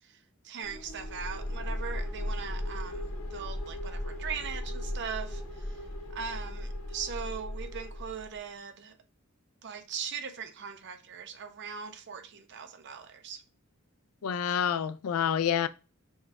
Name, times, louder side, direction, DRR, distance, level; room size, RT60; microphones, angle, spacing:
voice 1, 0.4-5.8 6.1-9.0 9.6-13.4, right 7 dB, 55° right, 0.6 m, -40 dB
sound 1, 0.6-8.4, left 1 dB, 65° left, 1.1 m, -37 dB
voice 2, 14.2-15.7, left 8 dB, 90° left, 0.4 m, -28 dB
6.3 x 2.3 x 3.2 m
head